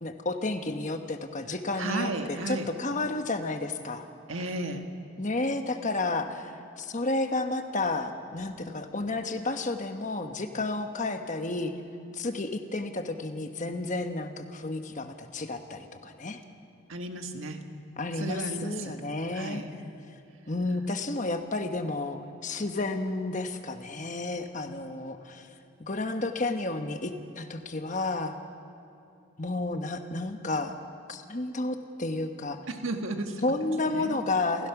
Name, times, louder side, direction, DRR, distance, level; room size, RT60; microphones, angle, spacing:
voice 1, 0.0-4.0 5.2-11.7 12.1-16.4 18.0-19.6 20.5-25.5 25.8-28.4 29.4-30.8 31.1-32.6 33.4-34.7, left 2 dB, 40° left, 7 dB, 1.1 m, -31 dB
voice 2, 1.8-2.7 4.3-4.8 16.9-17.6 18.2-18.9 19.3-19.7 32.7-33.4 33.9-34.2, right 2 dB, 80° right, 5 dB, 1.6 m, -33 dB
28.0 x 16.0 x 6.0 m, 2.7 s
head